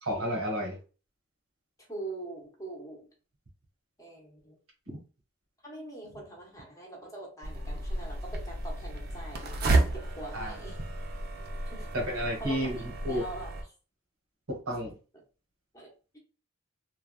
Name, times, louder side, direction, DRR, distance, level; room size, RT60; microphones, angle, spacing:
voice 1, 0.0-0.8 4.9-5.0 10.3-10.5 11.9-13.2 14.5-14.9, equal, 85° right, 0 dB, 1.3 m, -32 dB
voice 2, 1.9-3.1 4.0-4.6 5.6-9.6 9.9-10.8 11.7-11.9 12.4-12.7 13.1-13.6 15.7-16.2, right 2 dB, 15° left, -2 dB, 0.9 m, -43 dB
sound 1, 7.4-13.6, right 2 dB, 45° right, 0.5 m, -32 dB
3.3 x 2.3 x 2.2 m, 0.34 s
head